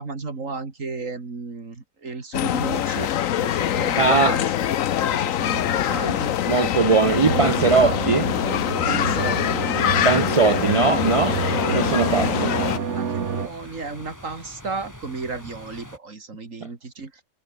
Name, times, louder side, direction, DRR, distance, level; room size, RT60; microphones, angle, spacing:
voice 1, 0.0-4.7 5.0-6.3 8.9-9.6 12.1-17.1, right 4 dB, 80° right, 3.4 m, -34 dB
sound 1, 2.3-12.8, left 10 dB, 85° left, 1.2 m, -24 dB
voice 2, 4.0-4.4 6.1-6.2 6.5-8.3 10.0-11.4 11.7-12.5, right 4 dB, 45° right, 0.4 m, -20 dB
sound 2, 7.2-13.5, right 6 dB, 65° right, 1.7 m, -28 dB
sound 3, 9.1-16.0, equal, 15° left, 6.8 m, -44 dB
omnidirectional pair, 1.3 m